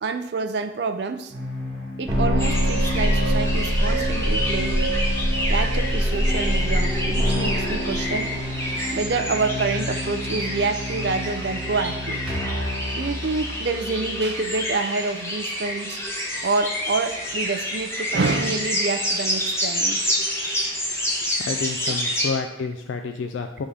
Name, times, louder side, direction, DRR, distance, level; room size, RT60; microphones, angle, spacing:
voice 1, 0.0-1.3 2.0-5.0 5.5-8.3 8.9-12.2 12.9-16.0 16.4-20.2 21.9-22.0, right 3 dB, 60° right, 9 dB, 0.4 m, -27 dB
sound 1, 1.3-14.6, equal, ahead, 1.6 m, -25 dB
sound 2, 2.4-22.3, equal, 15° left, 1.1 m, -28 dB
voice 2, 21.2-23.6, left 4 dB, 85° left, 5 dB, 0.4 m, -29 dB
4.8 x 3.6 x 5.6 m, 0.89 s
head